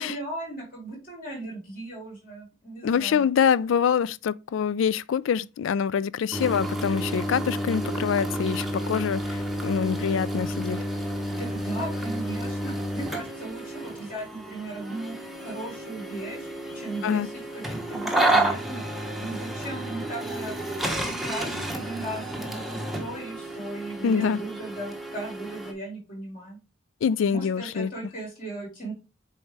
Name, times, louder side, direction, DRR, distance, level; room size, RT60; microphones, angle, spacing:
voice 1, 0.0-3.2 11.3-16.5 16.7-18.8 19.2-26.6 27.3-28.9, right 2 dB, 45° left, 3.8 m, -37 dB
voice 2, 2.8-10.8 17.0-17.3 24.0-24.4 27.0-27.9, left 7 dB, 75° left, 0.3 m, -25 dB
sound 1, 6.3-25.7, right 1 dB, ahead, 0.8 m, -31 dB
7.2 x 4.2 x 3.3 m
head